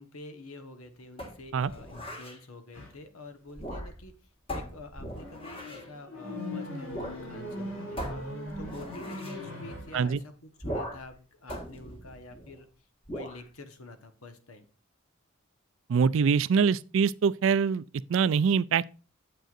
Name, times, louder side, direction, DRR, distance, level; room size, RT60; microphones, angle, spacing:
voice 1, 0.0-8.2 8.6-12.7 13.1-14.7, left 2 dB, 85° left, 1.3 m, -47 dB
sound 1, 1.2-2.4 3.5-4.1 4.5-5.9 6.9-7.2 7.5-7.6 8.0-9.4 10.6-11.1 11.5-12.6 13.1-13.4, equal, 25° left, 1.7 m, -39 dB
sound 2, 2.7-3.0 4.8-10.0, left 1 dB, 65° left, 4.0 m, -39 dB
voice 2, 15.9-17.8 18.1-19.0, right 6 dB, 65° right, 0.3 m, -24 dB
9.1 x 7.7 x 2.5 m
head